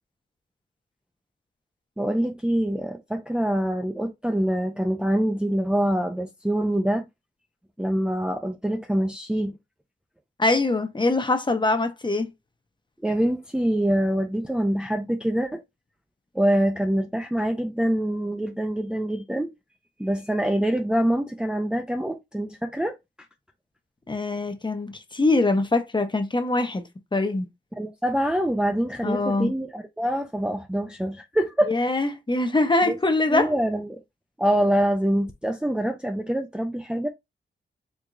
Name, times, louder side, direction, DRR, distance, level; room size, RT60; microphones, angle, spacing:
voice 1, 2.0-7.1 7.8-9.6 13.0-15.6 16.3-19.5 20.0-23.0 27.8-31.7 32.8-33.0 33.3-34.0 34.4-37.1, right 1 dB, 5° right, 0.6 m, -25 dB
voice 2, 10.4-12.3 24.1-26.8 27.1-27.5 29.0-29.5 31.7-33.5, left 2 dB, 25° left, 0.9 m, -23 dB
4.7 x 3.5 x 2.6 m
cardioid pair, 75°, 20 cm